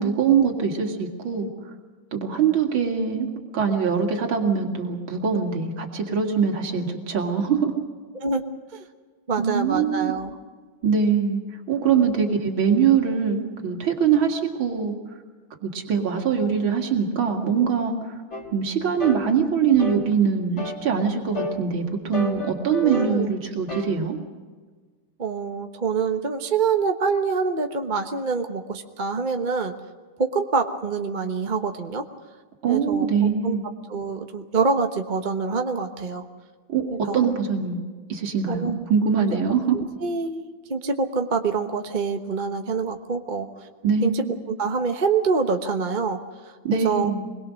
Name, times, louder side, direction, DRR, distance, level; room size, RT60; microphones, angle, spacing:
voice 1, 0.0-1.7 2.1-3.3 3.5-7.7 9.4-10.1 10.8-11.4 11.7-14.9 15.6-18.2 18.5-24.2 32.6-33.6 36.7-36.9 37.1-37.8 38.1-39.8 43.8-44.4 46.6-47.3, right 6 dB, 80° right, 1 dB, 3.0 m, -23 dB
voice 2, 9.3-10.4 22.8-23.3 25.2-29.7 30.2-32.1 32.7-33.1 33.4-33.6 33.9-36.2 37.1-37.2 38.5-38.8 39.7-43.5 44.0-46.2 46.4-47.1, right 4 dB, 30° right, 5 dB, 1.1 m, -26 dB
sound 1, 18.3-18.5 19.0-19.2 19.8-20.0 20.6-20.8 21.3-21.6 22.1-23.2 23.7-23.9, left 2 dB, 35° left, 3.2 m, -30 dB
26.0 x 21.5 x 6.4 m, 1.5 s
omnidirectional pair, 2.2 m